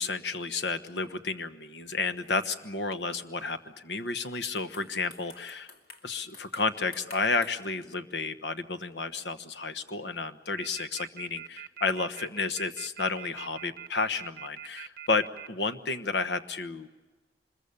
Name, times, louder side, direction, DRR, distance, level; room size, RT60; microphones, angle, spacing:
voice 1, 0.0-5.7 6.0-16.9, left 4 dB, 75° left, 10 dB, 1.1 m, -31 dB
sound 1, 2.1-2.6 3.0-3.5 4.0-4.2 4.5-7.5, left 3 dB, 60° left, 2.5 m, -52 dB
sound 2, 10.6-15.5, right 9 dB, 55° right, 0.9 m, -42 dB
25.0 x 21.5 x 6.9 m, 1.2 s
head